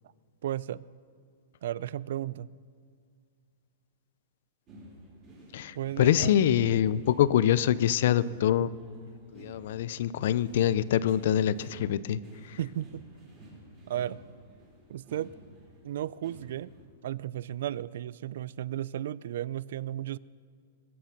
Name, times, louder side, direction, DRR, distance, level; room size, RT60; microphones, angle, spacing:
voice 1, 0.4-0.9 1.6-2.5 5.8-6.6 12.6-13.0 13.9-14.2 14.9-15.3 15.8-16.7 17.0-20.2, right 12 dB, 65° right, 21 dB, 0.3 m, -34 dB
sound 1, 4.7-16.8, right 1 dB, 25° right, 4.1 m, -52 dB
voice 2, 5.5-8.7 9.3-12.2 12.5-12.6, left 10 dB, 55° left, 17 dB, 0.4 m, -25 dB
21.5 x 8.4 x 5.8 m, 2.2 s
supercardioid pair, 170°, 0 cm